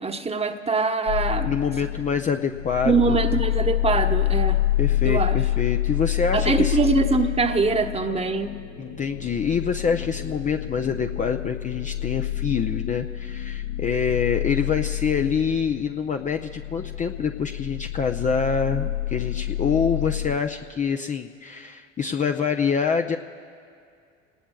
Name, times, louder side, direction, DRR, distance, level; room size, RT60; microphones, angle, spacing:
voice 1, 0.0-1.5 2.8-4.6 5.0-5.4 6.3-8.5, right 4 dB, 15° right, 6 dB, 1.2 m, -23 dB
sound 1, 1.1-20.4, left 13 dB, 85° left, 4.9 m, -27 dB
voice 2, 1.4-3.2 4.8-6.8 8.8-23.2, left 6 dB, 20° left, 5 dB, 0.6 m, -26 dB
28.5 x 19.0 x 2.4 m, 2.3 s
figure-of-eight pair, 70°, 36 cm